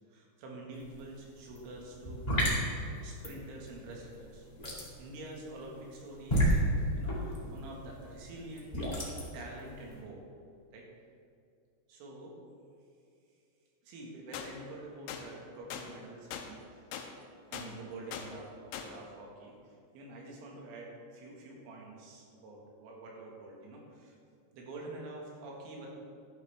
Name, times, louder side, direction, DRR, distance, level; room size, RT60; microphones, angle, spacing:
voice 1, 0.1-2.5 3.0-4.5 5.0-6.6 6.9-8.8 9.3-10.2 10.7-10.9 11.9-12.4 13.8-16.8 17.5-19.5 19.9-24.2 24.5-25.9, right 2 dB, 90° right, -2 dB, 4.3 m, -47 dB
sound 1, 0.7-10.0, equal, 40° left, 0.5 m, -32 dB
sound 2, 14.3-14.5 15.1-15.2 15.7-15.9 16.3-16.5 16.9-17.1 17.5-17.7 18.1-18.3 18.7-18.9, left 8 dB, 80° left, 2.5 m, -40 dB
12.5 x 10.5 x 3.5 m, 2.4 s
omnidirectional pair, 5.5 m